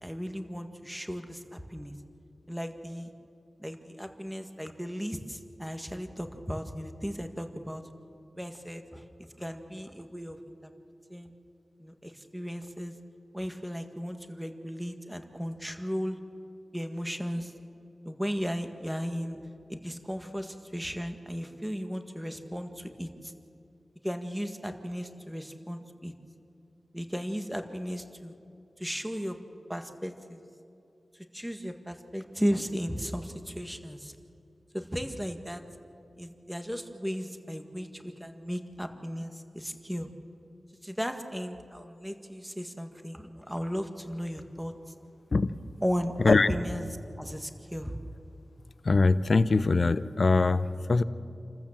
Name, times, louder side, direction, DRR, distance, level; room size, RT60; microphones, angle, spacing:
voice 1, 0.0-1.9 2.5-3.1 3.6-7.8 8.3-9.0 9.4-10.4 10.6-10.7 11.1-11.3 11.8-12.9 13.3-16.2 16.7-17.5 18.0-19.4 19.7-23.3 24.0-26.1 26.9-28.4 28.8-29.4 29.7-30.4 31.3-34.1 34.7-35.6 36.2-40.1 40.8-44.7 45.8-46.8 47.2-47.9, equal, 5° right, 6 dB, 1.7 m, -35 dB
voice 2, 48.8-51.0, left 3 dB, 60° left, 13 dB, 0.8 m, -22 dB
28.5 x 14.0 x 7.4 m, 2.6 s
cardioid pair, 45°, 0 cm